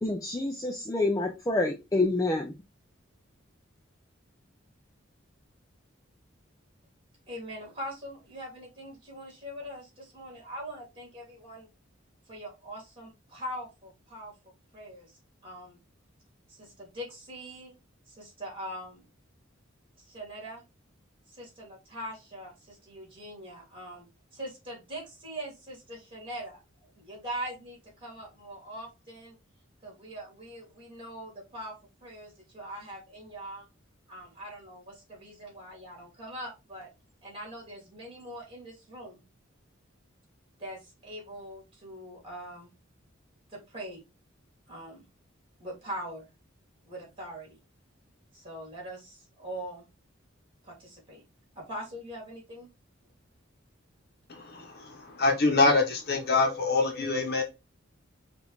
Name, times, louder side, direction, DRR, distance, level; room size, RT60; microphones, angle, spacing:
voice 1, 0.0-2.5, left 2 dB, 15° left, 0.4 m, -27 dB
voice 2, 7.3-11.7 12.3-14.3 14.7-15.1 15.4-15.8 16.5-17.7 18.1-19.0 20.0-20.6 21.3-24.1 24.3-26.6 26.9-29.4 29.8-31.7 32.0-33.7 34.1-36.9 37.2-39.2 40.6-42.7 43.5-44.0 44.7-45.1 45.6-46.3 46.9-47.6 48.3-49.9 50.6-51.2 51.6-52.7, equal, 25° right, 2.4 m, -42 dB
voice 3, 54.3-57.4, left 3 dB, 50° left, 1.0 m, -25 dB
5.2 x 2.5 x 3.1 m
head